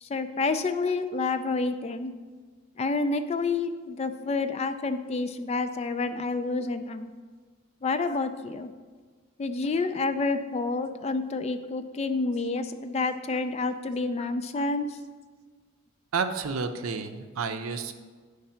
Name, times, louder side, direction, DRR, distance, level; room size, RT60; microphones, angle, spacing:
voice 1, 0.0-2.2 2.8-7.1 7.8-8.7 9.4-15.0, left 3 dB, 30° left, 9 dB, 0.3 m, -29 dB
voice 2, 16.1-17.9, right 5 dB, 80° right, 8 dB, 0.5 m, -30 dB
9.8 x 3.3 x 5.6 m, 1.5 s
head